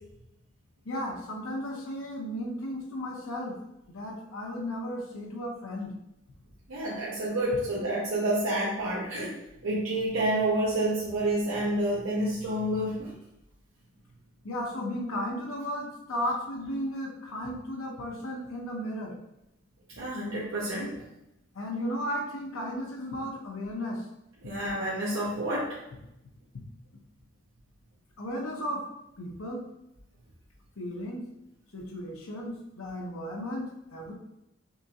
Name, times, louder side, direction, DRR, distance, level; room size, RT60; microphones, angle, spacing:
voice 1, 0.9-3.6 3.9-5.9 14.4-19.1 21.5-24.1 28.2-28.9 29.2-29.6 30.8-31.2 31.7-34.1, equal, 90° left, 0 dB, 0.8 m, -34 dB
voice 2, 6.7-9.3 9.6-13.1 20.0-21.0 24.4-25.8, right 1 dB, 85° right, -6 dB, 0.8 m, -29 dB
5.6 x 2.8 x 2.4 m, 0.86 s
head